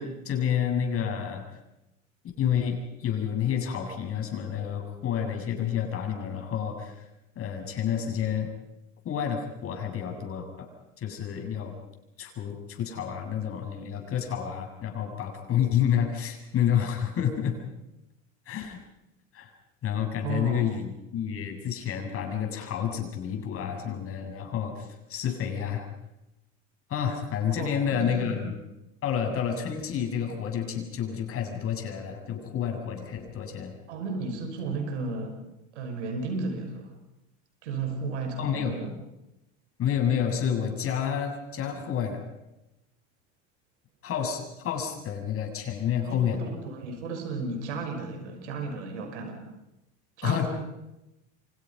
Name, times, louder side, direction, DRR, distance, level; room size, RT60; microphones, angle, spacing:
voice 1, 0.0-1.4 2.4-7.1 7.4-8.5 9.0-10.7 11.0-11.7 12.2-17.6 18.5-18.8 19.3-19.5 19.8-25.9 26.9-28.5 29.0-33.7 38.4-38.8 39.8-42.2 44.0-46.4 50.2-50.5, left 8 dB, 40° left, 3 dB, 7.7 m, -29 dB
voice 2, 20.2-20.7 27.5-28.3 33.9-35.4 35.7-36.9 37.6-38.9 46.0-49.4 50.2-50.5, right 3 dB, 90° right, 5 dB, 5.8 m, -34 dB
30.0 x 25.5 x 5.7 m, 0.93 s
supercardioid pair, 110°, 34 cm